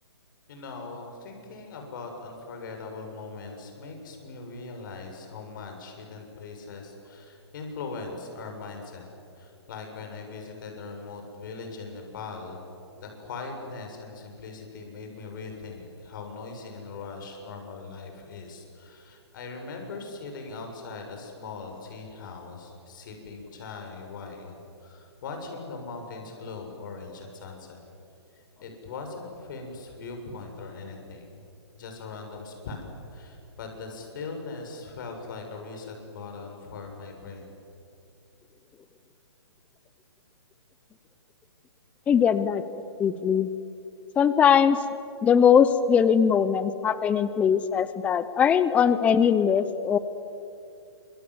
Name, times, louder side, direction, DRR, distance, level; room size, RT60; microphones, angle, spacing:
voice 1, 0.5-9.1 9.3-12.6 12.9-24.5 24.8-27.8 28.6-31.3 31.7-37.5, left 4 dB, 45° left, 3 dB, 7.0 m, -40 dB
voice 2, 42.1-42.6 43.0-43.5 44.2-44.8 45.2-50.0, left 7 dB, 10° left, 13 dB, 0.6 m, -21 dB
28.5 x 26.0 x 8.0 m, 2.7 s
hypercardioid pair, 155°, 14 cm